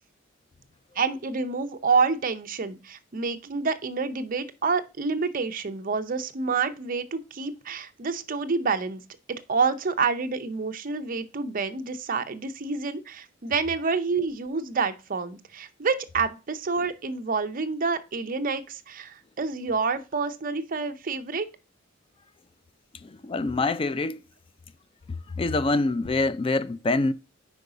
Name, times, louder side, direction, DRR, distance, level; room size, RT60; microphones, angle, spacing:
voice 1, 1.0-9.0 9.3-21.5, right 4 dB, 45° right, 0.6 m, -28 dB
voice 2, 23.0-24.2 25.4-27.1, left 2 dB, 25° left, 0.4 m, -25 dB
5.2 x 4.8 x 4.9 m
head